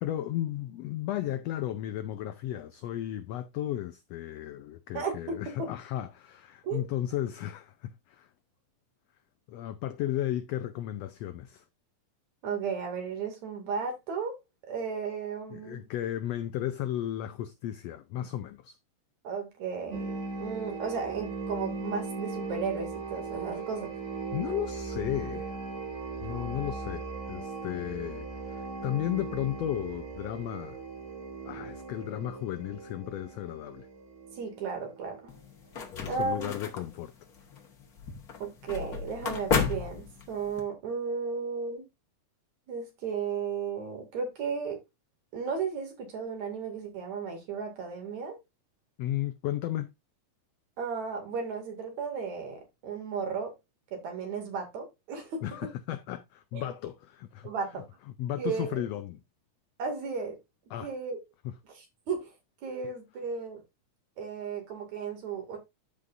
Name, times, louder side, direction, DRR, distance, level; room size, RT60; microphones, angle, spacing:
voice 1, 0.0-8.3 9.5-11.6 15.5-18.8 24.3-25.5 26.2-30.8 31.4-33.9 35.9-37.1 49.0-49.9 55.4-57.5 58.2-59.2 60.7-60.9 61.4-61.6, left 12 dB, 85° left, 1.4 m, -34 dB
voice 2, 5.0-5.7 6.6-6.8 12.4-14.4 14.7-15.9 19.2-23.9 34.3-35.3 36.1-36.5 38.4-41.9 42.7-44.8 45.3-48.4 50.8-53.5 53.9-55.5 56.5-56.6 57.4-57.8 58.4-58.8 59.8-60.4 60.8-61.2 61.7-62.3 62.6-63.6 64.2-65.6, right 5 dB, 65° right, 3.6 m, -34 dB
sound 1, 19.9-35.4, right 4 dB, 45° right, 3.3 m, -38 dB
sound 2, 35.3-40.6, left 5 dB, 45° left, 1.3 m, -34 dB
13.5 x 5.1 x 2.6 m
omnidirectional pair, 3.5 m